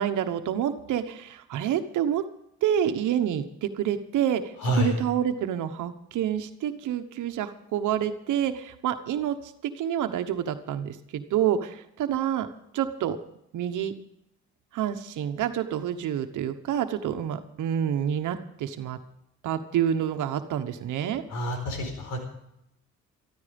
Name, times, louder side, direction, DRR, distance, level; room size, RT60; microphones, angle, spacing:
voice 1, 0.0-2.2 2.6-12.5 12.7-13.2 13.5-13.9 14.7-19.0 19.4-21.2, right 10 dB, 80° right, 8 dB, 1.2 m, -28 dB
voice 2, 4.6-4.9 21.3-22.2, equal, 85° left, 4 dB, 4.4 m, -27 dB
14.0 x 14.0 x 5.2 m, 0.79 s
cardioid pair, 90°, 30 cm